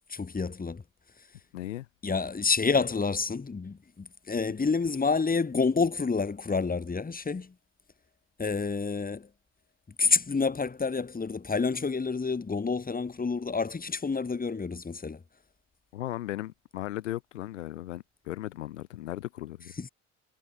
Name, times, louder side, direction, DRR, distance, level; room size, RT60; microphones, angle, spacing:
voice 1, 0.1-0.8 2.0-7.5 8.4-9.3 10.0-15.2 19.8-19.9, left 4 dB, 25° left, 3.4 m, -28 dB
voice 2, 1.5-1.9 15.9-19.7, left 14 dB, 85° left, 2.4 m, -37 dB
hypercardioid pair, 60°, 36 cm